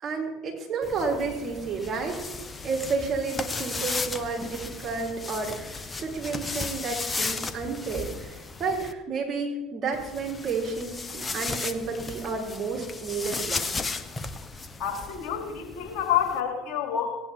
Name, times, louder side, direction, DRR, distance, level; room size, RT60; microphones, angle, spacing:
voice 1, 0.0-2.3 2.6-13.7, right 4 dB, 35° right, -3 dB, 4.6 m, -31 dB
sound 1, 0.8-8.9 9.9-16.4, left 3 dB, 20° left, 0.9 m, -35 dB
voice 2, 14.8-17.1, left 9 dB, 55° left, 2 dB, 3.1 m, -28 dB
17.5 x 9.6 x 3.9 m, 1.0 s
hypercardioid pair, 75°, 0 cm